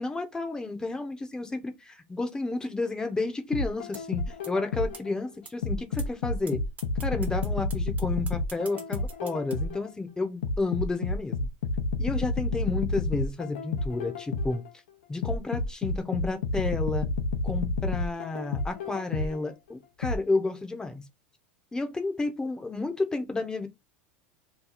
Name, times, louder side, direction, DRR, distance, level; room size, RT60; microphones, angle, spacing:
voice 1, 0.0-6.6 7.0-11.5 12.0-14.6 15.1-17.1 17.4-21.0 21.7-23.7, left 3 dB, 10° left, 0.8 m, -31 dB
sound 1, 3.5-5.1 5.6-9.9 10.4-14.7 15.2-19.5 20.0-20.2, left 3 dB, 80° left, 0.7 m, -30 dB
sound 2, 3.9-4.0 4.4-4.5 4.9-5.0 5.4-5.5 6.0-6.1 6.5-6.6 6.8-9.5, right 5 dB, 25° right, 1.0 m, -43 dB
3.0 x 2.3 x 3.9 m
hypercardioid pair, 100°, 6 cm